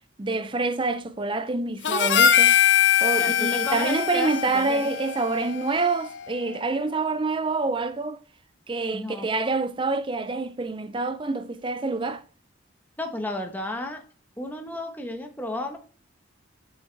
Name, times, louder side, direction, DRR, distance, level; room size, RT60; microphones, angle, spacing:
voice 1, 0.2-2.6 3.0-8.2 8.7-12.2, right 3 dB, 25° right, 0.5 m, -27 dB
Harmonica, 1.8-6.3, left 9 dB, 60° left, 0.4 m, -22 dB
voice 2, 3.2-4.8 8.9-9.3 13.0-14.0 14.4-15.8, left 1 dB, 10° left, 1.1 m, -32 dB
7.1 x 6.4 x 3.3 m
head